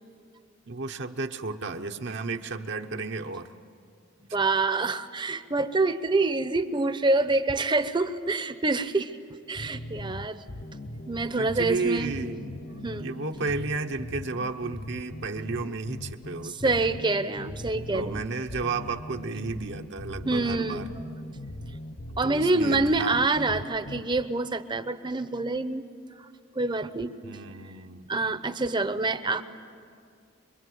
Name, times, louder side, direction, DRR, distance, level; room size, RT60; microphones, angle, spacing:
voice 1, 0.7-3.5 11.4-12.5 13.0-16.9 17.9-20.9 22.2-23.2 27.2-28.1, right 3 dB, 55° right, 5 dB, 0.9 m, -33 dB
voice 2, 4.3-9.1 9.5-10.4 11.1-12.1 12.8-13.1 16.4-18.2 20.2-20.8 22.2-25.8 26.6-27.2 28.1-29.4, right 3 dB, 20° right, 11 dB, 0.8 m, -26 dB
sound 1, 9.6-24.0, left 1 dB, 45° left, 0.9 m, -40 dB
25.5 x 22.5 x 9.4 m, 2.2 s
head